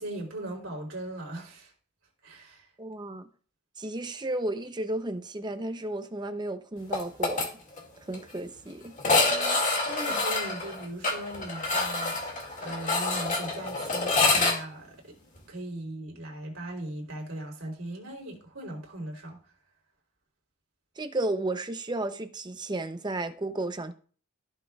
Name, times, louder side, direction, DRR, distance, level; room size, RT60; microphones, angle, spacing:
voice 1, 0.0-1.7 2.2-2.7 9.2-15.1 15.5-19.4, right 1 dB, 65° right, 3.4 m, -39 dB
voice 2, 2.8-3.3 3.8-7.5 8.1-8.9 21.0-23.9, right 2 dB, 20° right, 0.7 m, -33 dB
sound 1, 6.9-7.5 7.8-7.9 8.1-8.2 9.0-14.6, left 3 dB, 35° left, 2.2 m, -26 dB
15.0 x 6.3 x 2.4 m
head